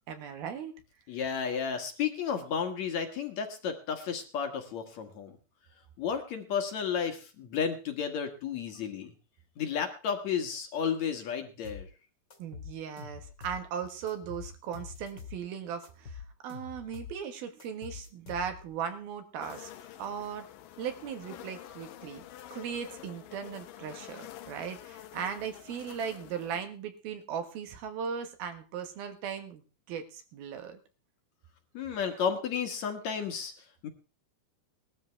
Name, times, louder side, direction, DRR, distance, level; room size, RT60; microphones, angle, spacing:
voice 1, 0.1-0.7 12.4-19.7 20.0-20.5 20.8-22.2 22.5-30.8, right 7 dB, 90° right, 8 dB, 3.4 m, -38 dB
voice 2, 1.1-5.4 6.0-9.1 9.6-11.9 31.7-33.5 33.8-33.9, left 7 dB, 60° left, 6 dB, 2.3 m, -32 dB
sound 1, 11.6-11.9 12.3-13.7 14.1-15.4 15.8-17.2 17.6-18.8, left 6 dB, 40° left, 2.0 m, -45 dB
sound 2, 19.4-26.6, left 13 dB, 75° left, 2.6 m, -48 dB
19.5 x 13.0 x 3.4 m, 0.32 s
omnidirectional pair, 4.2 m